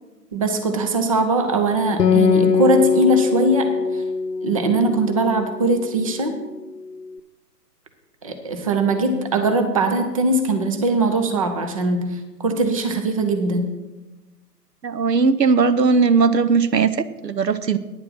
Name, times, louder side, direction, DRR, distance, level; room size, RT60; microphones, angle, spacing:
voice 1, 0.3-4.0 4.4-6.4 8.2-13.7, right 2 dB, 20° right, 6 dB, 0.6 m, -21 dB
Acoustic guitar, 2.0-5.7, left 5 dB, 70° left, 0.8 m, -21 dB
voice 2, 14.8-17.8, right 5 dB, 80° right, 13 dB, 0.8 m, -18 dB
10.0 x 7.5 x 6.0 m, 1.1 s
figure-of-eight pair, 135°, 49 cm